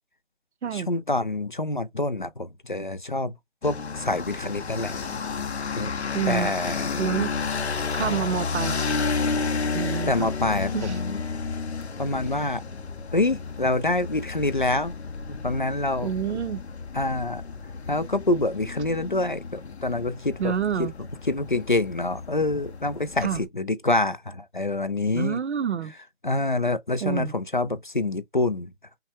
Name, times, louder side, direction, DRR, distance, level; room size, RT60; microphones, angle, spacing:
voice 1, 0.7-3.3 3.6-5.0 5.7-5.9 6.3-7.0 10.1-11.2 12.0-12.6 13.1-14.9 15.3-16.1 16.9-17.4 17.9-20.5 20.8-20.9 21.3-25.4 26.2-28.7, left 2 dB, 45° left, 0.4 m, -26 dB
sound 1, 3.6-23.4, left 4 dB, 65° left, 0.8 m, -32 dB
voice 2, 6.1-6.6 7.0-7.3 7.9-8.8 9.7-10.3 10.7-11.0 16.0-16.6 20.4-20.9 23.2-23.4 25.1-25.9 27.0-27.3, right 8 dB, 70° right, 0.6 m, -28 dB
5.6 x 2.1 x 3.3 m
hypercardioid pair, 175°, 35 cm